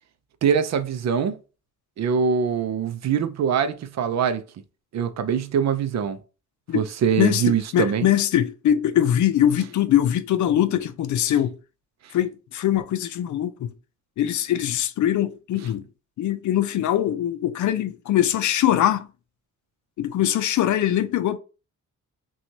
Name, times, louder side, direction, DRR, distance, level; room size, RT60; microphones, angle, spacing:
voice 1, 0.4-1.4 2.0-4.4 4.9-6.2 6.7-8.1, right 7 dB, 60° right, 0.5 m, -23 dB
voice 2, 7.2-11.6 12.1-13.7 14.2-15.9 16.2-19.1 20.0-21.4, left 11 dB, 70° left, 0.5 m, -22 dB
5.8 x 2.3 x 2.7 m
cardioid pair, 125°, 31 cm